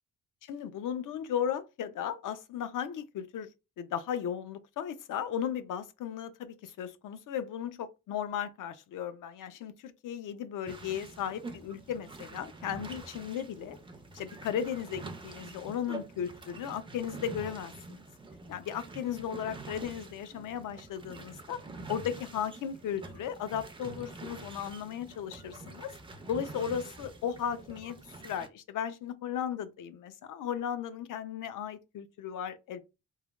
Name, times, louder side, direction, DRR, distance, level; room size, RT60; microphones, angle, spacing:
voice 1, 0.4-3.5 3.8-13.8 14.1-18.0 18.5-21.6 21.9-25.9 26.3-28.0 28.2-32.8, left 8 dB, 75° left, 0.5 m, -36 dB
sound 1, 10.7-28.5, right 3 dB, 15° right, 0.3 m, -46 dB
3.2 x 2.1 x 2.3 m
wide cardioid pair, 155°, 32 cm